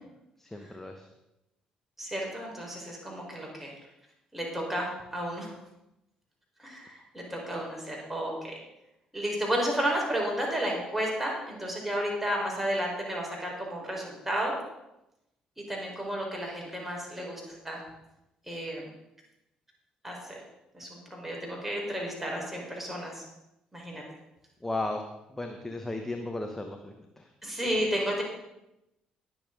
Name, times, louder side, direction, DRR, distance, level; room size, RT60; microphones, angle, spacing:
voice 1, 0.4-1.0 24.6-25.0 25.3-27.3, left 2 dB, 10° left, 4 dB, 1.3 m, -35 dB
voice 2, 2.0-3.7 4.3-5.6 6.6-8.6 9.1-14.6 15.7-17.8 18.5-18.9 20.0-20.4 20.7-23.2 23.7-24.0 27.4-28.2, equal, 5° right, -2 dB, 4.6 m, -32 dB
21.0 x 7.0 x 3.9 m, 0.90 s
figure-of-eight pair, 45°, 4 cm